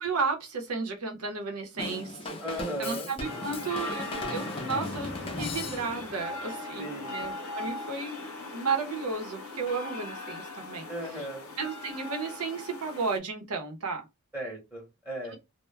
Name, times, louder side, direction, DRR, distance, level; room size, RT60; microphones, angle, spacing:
voice 1, 0.0-2.4 2.8-10.9 11.6-14.1 15.2-15.3, right 4 dB, 75° right, 0.7 m, -33 dB
Drum kit / Drum, 1.8-6.1, left 2 dB, 25° left, 0.4 m, -37 dB
voice 2, 2.4-3.1 6.8-7.2 10.9-11.5 14.3-15.4, right 1 dB, 10° right, 0.8 m, -36 dB
sound 1, 3.2-13.2, left 2 dB, 70° left, 0.7 m, -39 dB
2.2 x 2.1 x 3.2 m
head